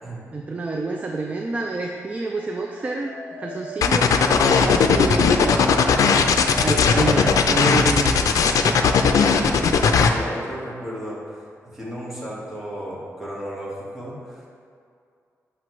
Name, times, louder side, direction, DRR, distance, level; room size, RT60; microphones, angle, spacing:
voice 1, 0.3-5.7 6.6-9.4, right 3 dB, 25° right, 1 dB, 0.4 m, -28 dB
Dog, 2.4-8.0, left 3 dB, 45° left, 1.5 m, -39 dB
sound 1, 3.8-10.1, left 5 dB, 80° left, 0.4 m, -17 dB
voice 2, 9.2-14.5, equal, 5° right, -7 dB, 1.6 m, -34 dB
7.5 x 6.0 x 3.1 m, 2.3 s
wide cardioid pair, 160°, 6 cm